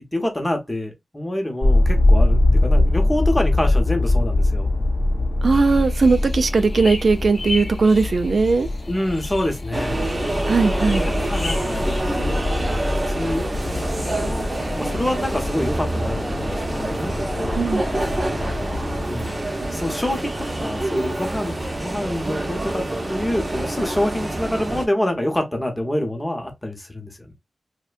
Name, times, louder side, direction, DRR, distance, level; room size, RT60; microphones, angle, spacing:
voice 1, 0.0-4.7 8.9-10.0 11.3-12.0 13.0-13.4 14.0-17.7 19.1-19.4 19.7-27.3, left 1 dB, 15° left, 0.8 m, -26 dB
Dark Ambience, 1.6-19.0, left 2 dB, 35° left, 0.3 m, -23 dB
voice 2, 5.4-8.7 10.5-11.1 17.5-17.8, right 4 dB, 70° right, 0.3 m, -18 dB
sound 1, 5.5-12.0, left 2 dB, 65° left, 0.8 m, -36 dB
sound 2, 9.7-24.9, right 1 dB, 35° right, 0.7 m, -27 dB
2.6 x 2.1 x 2.4 m
wide cardioid pair, 90°, 0 cm